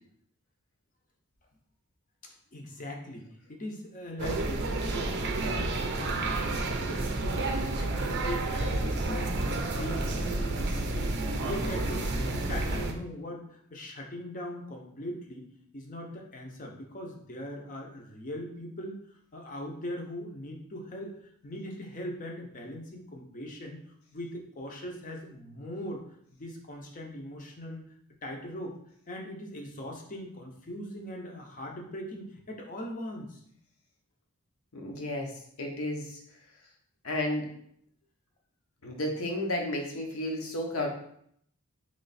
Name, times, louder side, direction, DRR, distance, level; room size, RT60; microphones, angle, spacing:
voice 1, 2.5-5.1 5.4-11.1 11.4-15.5 15.7-19.0 19.3-23.8 24.1-26.0 26.3-27.8 28.2-28.7 29.1-33.4, left 1 dB, 35° left, 1 dB, 0.7 m, -40 dB
sound 1, 4.2-12.9, right 2 dB, 50° right, 0.5 m, -30 dB
voice 2, 34.7-35.3 35.6-36.2 37.0-37.5 38.8-40.9, left 1 dB, 70° left, 1 dB, 0.9 m, -32 dB
3.2 x 3.1 x 4.1 m, 0.68 s
head